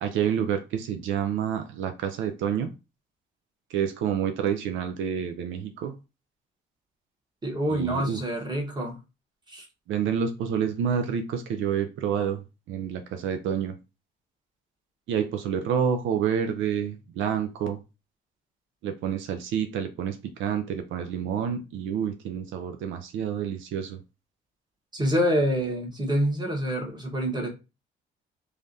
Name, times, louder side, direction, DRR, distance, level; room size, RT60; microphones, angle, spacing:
voice 1, 0.0-2.7 3.7-5.9 7.7-8.2 9.9-12.4 12.7-13.8 15.1-17.8 18.8-24.0, right 8 dB, 80° right, 0.4 m, -28 dB
voice 2, 7.4-8.9 9.5-9.6 24.9-27.5, equal, 20° right, 1.2 m, -26 dB
3.2 x 2.4 x 2.6 m
cardioid pair, 90°, 20 cm